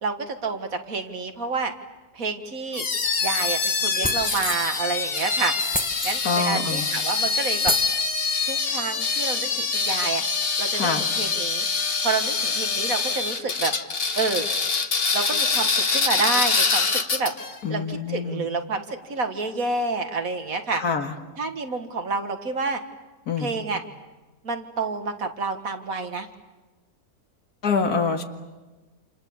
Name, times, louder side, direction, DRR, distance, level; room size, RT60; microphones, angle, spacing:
voice 1, 0.0-1.7 2.1-2.9 3.2-5.5 6.0-7.7 8.4-10.3 10.6-10.9 11.2-11.7 12.0-13.7 14.2-14.5 15.1-17.3 17.7-20.8 21.4-22.8 23.4-23.8 24.4-26.3, right 4 dB, 65° right, 6 dB, 2.1 m, -28 dB
sound 1, 2.7-17.5, left 4 dB, 40° left, 1.4 m, -25 dB
sound 2, 4.0-4.6 5.7-6.2 7.0-7.1 7.6-8.0, left 1 dB, 5° left, 1.0 m, -28 dB
voice 2, 6.2-6.9 10.7-11.1 17.6-18.5 20.7-21.1 23.3-23.5 27.6-28.2, left 5 dB, 75° left, 5 dB, 2.4 m, -25 dB
28.5 x 28.0 x 7.1 m, 1.2 s
omnidirectional pair, 1.6 m